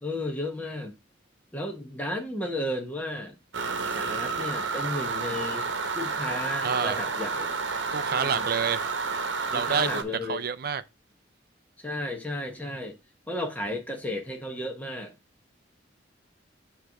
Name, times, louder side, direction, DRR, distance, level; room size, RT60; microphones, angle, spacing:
voice 1, 0.0-0.9 1.5-3.4 3.9-5.7 5.9-7.5 8.1-8.5 9.5-10.4 11.8-13.0 13.3-15.1, left 1 dB, 10° left, 1.1 m, -33 dB
sound 1, 3.5-10.0, right 4 dB, 80° right, 1.0 m, -30 dB
voice 2, 6.6-7.0 7.9-8.9 9.5-10.8, right 6 dB, 55° right, 0.5 m, -28 dB
6.5 x 3.1 x 4.8 m
head